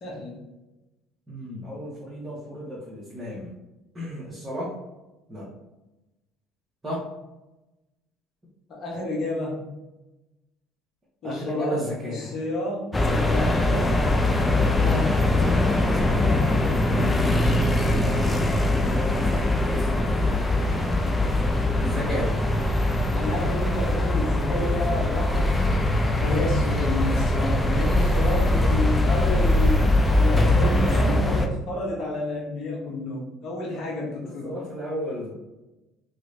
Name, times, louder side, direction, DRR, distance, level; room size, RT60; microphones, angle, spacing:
voice 1, 0.0-0.4 8.7-9.7 11.2-11.8 12.1-14.0 14.8-15.2 23.1-25.9 26.2-34.5, left 2 dB, 50° left, -2 dB, 1.0 m, -30 dB
voice 2, 1.3-3.5 3.9-4.8 5.3-5.5 6.8-7.1 11.2-12.4 16.9-18.4 18.7-20.3 21.8-22.4 28.4-28.7 33.7-35.3, equal, 25° right, -9 dB, 1.2 m, -34 dB
sound 1, 12.9-31.5, left 1 dB, 15° left, 0.5 m, -22 dB
3.0 x 3.0 x 2.7 m, 1.0 s
hypercardioid pair, 75°, 0 cm